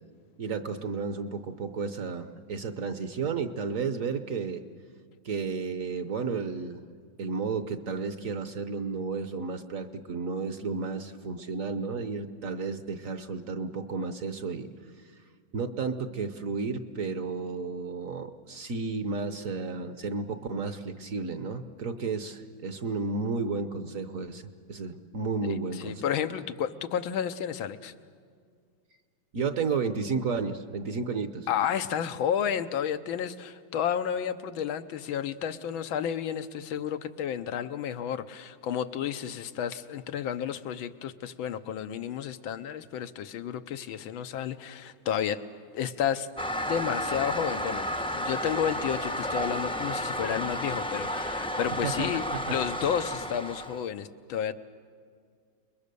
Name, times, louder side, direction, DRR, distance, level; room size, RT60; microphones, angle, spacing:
voice 1, 0.4-4.6 5.2-6.8 7.2-14.7 15.5-24.4 24.7-26.0 29.3-31.5 51.8-52.1 52.5-52.6, right 4 dB, 50° right, 9 dB, 1.1 m, -32 dB
voice 2, 25.7-27.9 31.5-45.4 45.7-46.3 46.7-54.5, left 9 dB, 90° left, 10 dB, 1.7 m, -31 dB
Toilet flush, 46.4-53.9, equal, 5° left, 0.4 m, -32 dB
28.5 x 21.5 x 6.8 m, 2.1 s
omnidirectional pair, 2.1 m